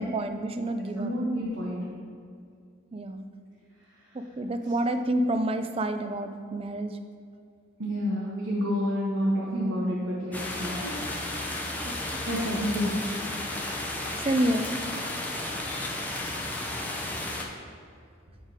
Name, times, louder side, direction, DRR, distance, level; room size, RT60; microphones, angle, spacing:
voice 1, 0.0-1.2 2.9-3.3 4.1-6.9 11.8-12.0 14.2-14.7, right 1 dB, 30° right, 8 dB, 0.4 m, -28 dB
voice 2, 1.0-1.8 7.8-11.0 12.2-13.0, equal, 75° right, -7 dB, 1.3 m, -29 dB
sound 1, 10.3-17.4, left 1 dB, 10° left, 0.6 m, -33 dB
7.9 x 4.3 x 5.0 m, 2.3 s
head